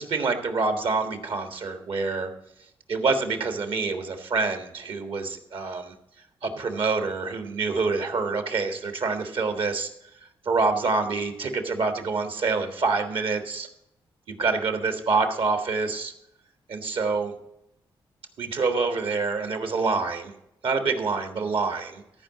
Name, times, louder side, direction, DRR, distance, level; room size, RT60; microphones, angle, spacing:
voice 1, 0.0-2.3 2.9-5.9 6.4-9.9 10.2-13.7 14.3-16.1 16.7-17.3 18.4-20.3 20.6-22.0, right 4 dB, 70° right, 7 dB, 1.6 m, -26 dB
14.0 x 4.8 x 7.8 m, 0.81 s
cardioid pair, 70°, 9 cm